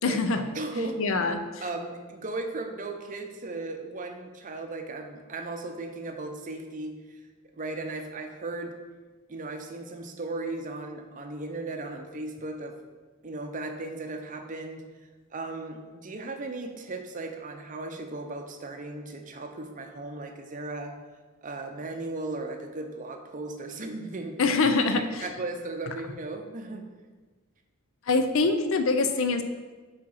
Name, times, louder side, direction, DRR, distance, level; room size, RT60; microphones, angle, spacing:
voice 1, 0.0-0.4 1.0-1.4 24.4-25.2 28.1-29.4, left 3 dB, 60° left, 8 dB, 0.5 m, -24 dB
voice 2, 0.5-1.2 1.6-7.2 7.5-8.7 9.3-12.8 13.2-14.8 15.3-21.0 21.4-24.4 24.9-26.9, right 2 dB, 35° right, 4 dB, 0.6 m, -36 dB
5.2 x 4.2 x 5.5 m, 1.4 s
head